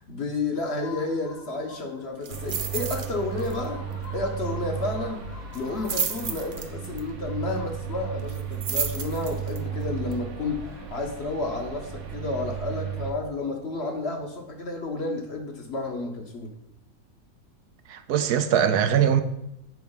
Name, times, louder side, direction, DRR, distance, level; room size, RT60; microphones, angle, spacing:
voice 1, 0.1-3.8 4.1-5.2 5.5-16.5, left 3 dB, 45° left, 1.2 m, -31 dB
sound 1, 0.6-2.2 3.3-6.7, left 4 dB, 85° left, 2.2 m, -46 dB
sound 2, 2.2-3.1 3.4-3.7 3.9-4.0 5.5-7.0 8.3-9.6 10.1-10.2, right 6 dB, 50° right, 0.6 m, -31 dB
sound 3, 2.3-13.1, right 8 dB, 70° right, 1.3 m, -35 dB
voice 2, 17.9-19.2, right 9 dB, 90° right, 1.3 m, -21 dB
7.8 x 4.6 x 5.6 m
omnidirectional pair, 1.6 m